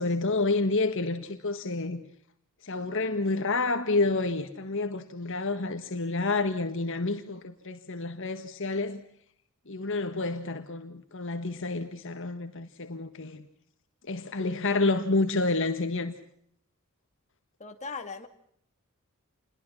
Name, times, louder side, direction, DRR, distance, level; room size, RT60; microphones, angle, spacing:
voice 1, 0.0-2.0 2.6-9.0 9.7-13.5 14.1-16.1, left 3 dB, 60° left, 1.8 m, -29 dB
voice 2, 17.6-18.3, left 4 dB, 30° left, 2.4 m, -38 dB
29.0 x 22.0 x 5.8 m
head